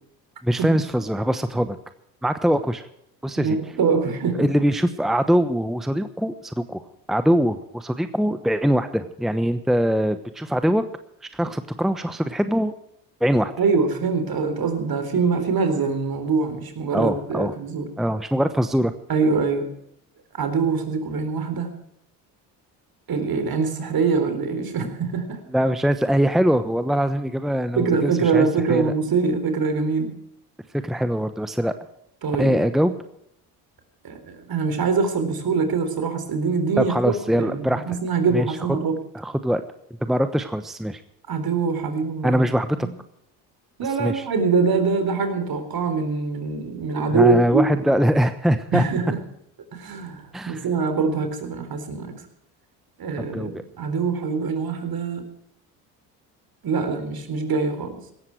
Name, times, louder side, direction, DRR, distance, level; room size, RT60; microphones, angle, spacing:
voice 1, 0.4-1.8 2.2-2.8 3.2-3.6 4.4-6.8 7.1-10.8 11.3-12.7 13.2-13.5 16.9-17.5 18.0-18.9 25.5-28.9 30.7-31.7 32.4-32.9 36.8-37.8 38.3-38.5 39.1-39.6 40.0-41.0 42.2-42.9 43.8-44.3 47.1-48.8 50.3-50.6 53.2-53.6, equal, ahead, 10 dB, 1.0 m, -22 dB
voice 2, 3.4-4.5 13.6-17.9 19.1-19.7 20.3-21.7 23.1-25.4 27.8-30.1 32.2-32.6 34.0-39.0 41.3-42.4 42.8-42.9 43.8-47.9 48.7-49.2 49.7-52.1 53.0-55.2 56.6-58.0, right 4 dB, 50° right, 8 dB, 4.0 m, -24 dB
17.5 x 14.0 x 4.7 m, 0.74 s
hypercardioid pair, 65°, 46 cm